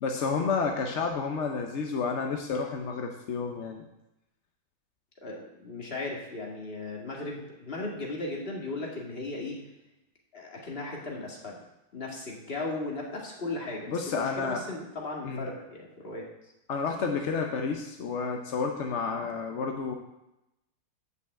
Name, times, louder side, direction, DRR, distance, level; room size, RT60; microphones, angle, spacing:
voice 1, 0.0-3.8 13.9-14.6 15.2-15.5 16.7-19.9, left 5 dB, 60° left, 2 dB, 0.7 m, -30 dB
voice 2, 5.2-9.6 10.3-11.6 11.9-16.3 19.1-19.3, left 2 dB, 30° left, -2 dB, 1.9 m, -36 dB
7.9 x 5.7 x 7.6 m, 0.92 s
omnidirectional pair, 2.1 m